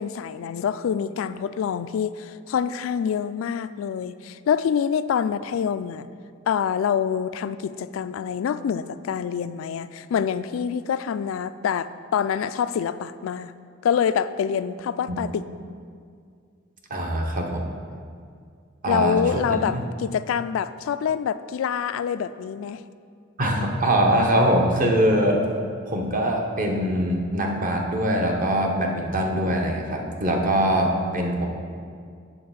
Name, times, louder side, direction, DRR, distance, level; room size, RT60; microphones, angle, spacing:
voice 1, 0.0-6.1 6.5-13.5 13.8-15.4 18.9-22.8, left 7 dB, 85° left, 14 dB, 0.3 m, -26 dB
voice 2, 16.9-17.7 18.8-19.2 19.7-19.8 23.4-25.5 25.9-31.5, right 1 dB, 45° right, 1 dB, 1.0 m, -22 dB
8.5 x 4.0 x 7.0 m, 2.2 s
head